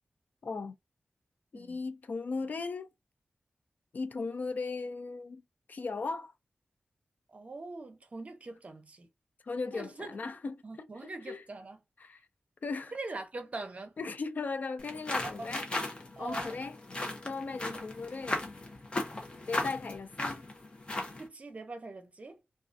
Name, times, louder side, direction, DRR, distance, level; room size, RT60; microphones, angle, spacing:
voice 1, 0.4-0.7 1.5-2.9 3.9-5.4 5.7-6.3 9.4-11.4 12.0-12.3 12.6-12.9 14.0-15.7 15.9-16.8 17.2-18.6 19.5-20.4, left 4 dB, 60° left, 0.3 m, -37 dB
voice 2, 7.3-9.1 9.7-10.4 10.6-11.8 12.9-14.0 15.2-15.5 16.2-16.6 17.6-17.8 21.2-22.4, right 3 dB, 45° right, 0.6 m, -43 dB
sound 1, 14.8-21.3, left 2 dB, 30° left, 0.7 m, -37 dB
2.4 x 2.3 x 2.5 m
wide cardioid pair, 120°, 3 cm